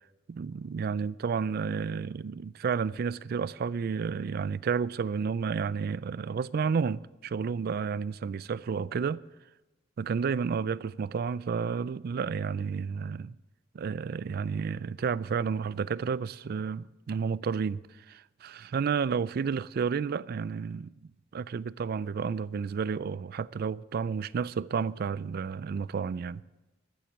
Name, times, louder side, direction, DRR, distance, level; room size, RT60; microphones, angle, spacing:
voice 1, 0.3-9.2 10.0-13.4 13.7-20.9 21.3-26.4, right 6 dB, 50° right, 0.3 m, -31 dB
13.5 x 7.5 x 8.1 m
head